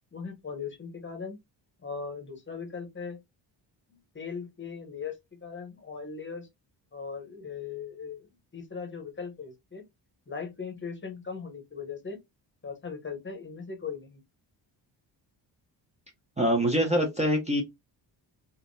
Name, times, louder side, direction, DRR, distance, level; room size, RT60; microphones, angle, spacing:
voice 1, 0.1-1.4 1.8-3.2 3.9-6.5 6.9-8.3 8.5-9.8 10.3-12.2 12.6-14.2, left 5 dB, 25° left, 0.8 m, -39 dB
voice 2, 16.4-17.6, equal, 15° right, 0.6 m, -24 dB
3.6 x 2.8 x 2.6 m
cardioid pair, 130°, 46 cm